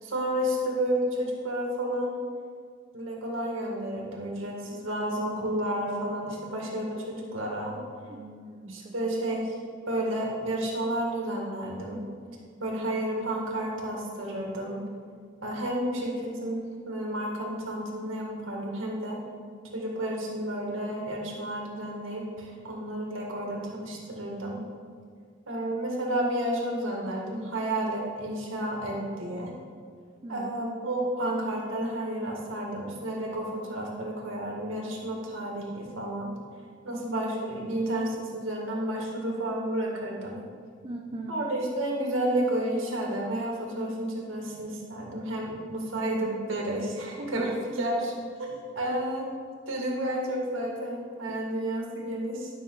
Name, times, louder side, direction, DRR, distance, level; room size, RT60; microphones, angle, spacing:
voice 1, 0.0-2.2 2.9-7.7 8.7-9.6 9.9-12.0 12.6-14.8 15.4-19.2 19.7-24.6 25.5-29.5 30.3-36.3 36.8-40.4 41.3-48.1 48.4-49.3 49.7-52.5, right 1 dB, 85° right, -1 dB, 2.0 m, -31 dB
voice 2, 8.1-9.0 30.2-30.5 40.8-41.4 47.4-47.5 48.5-48.6 51.3-51.4, right 2 dB, 30° right, 1 dB, 0.6 m, -40 dB
12.0 x 6.2 x 4.0 m, 2.1 s
head